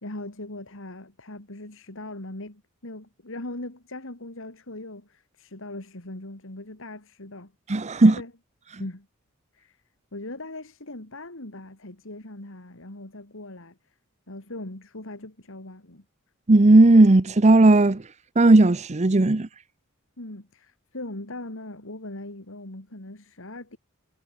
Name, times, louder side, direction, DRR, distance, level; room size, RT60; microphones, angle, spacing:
voice 1, 0.0-7.5 8.0-8.3 8.7-9.1 9.5-9.8 10.1-13.8 14.3-16.0 20.2-23.8, left 2 dB, 65° left, 3.1 m, -40 dB
voice 2, 7.7-8.2 16.5-18.1 18.4-19.5, right 2 dB, 30° right, 0.7 m, -16 dB
head